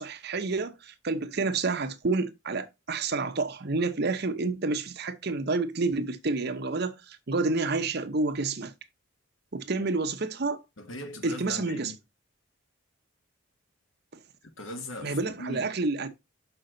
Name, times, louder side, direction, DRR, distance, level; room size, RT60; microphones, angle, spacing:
voice 1, 0.0-8.7 9.5-10.6 11.2-11.9 15.0-16.1, right 3 dB, 50° right, 0.8 m, -29 dB
voice 2, 10.8-12.0 14.4-15.7, left 1 dB, 70° left, 1.5 m, -40 dB
6.2 x 5.8 x 3.8 m
head